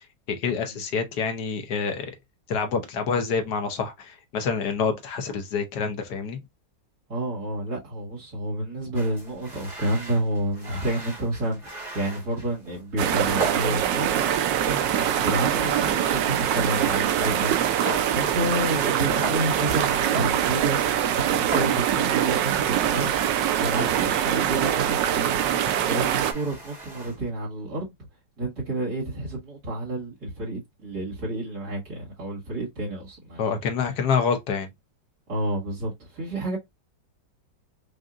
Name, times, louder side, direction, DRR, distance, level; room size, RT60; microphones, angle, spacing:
voice 1, 0.3-2.1 2.5-6.4 33.4-34.7, left 5 dB, 65° left, 1.4 m, -27 dB
voice 2, 7.1-27.9 28.4-33.4 35.3-36.6, right 1 dB, 60° right, 2.4 m, -30 dB
sound 1, 8.9-27.3, right 2 dB, 25° right, 1.7 m, -38 dB
sound 2, 13.0-26.3, right 10 dB, 90° right, 1.3 m, -24 dB
5.0 x 2.7 x 2.4 m
omnidirectional pair, 1.9 m